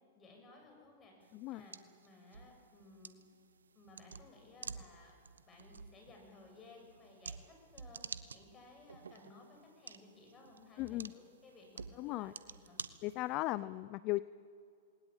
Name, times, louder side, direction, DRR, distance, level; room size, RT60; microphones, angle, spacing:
voice 1, 0.1-1.8 2.0-3.2 3.7-5.2 5.5-12.8, left 3 dB, 25° left, 2 dB, 7.5 m, -58 dB
sound 1, 1.2-13.6, right 5 dB, 90° right, 0.9 m, -51 dB
voice 2, 10.8-11.1 12.0-12.3 13.0-14.2, left 18 dB, 40° left, 17 dB, 0.5 m, -37 dB
20.0 x 19.0 x 9.0 m, 2.3 s
hypercardioid pair, 115°, 0 cm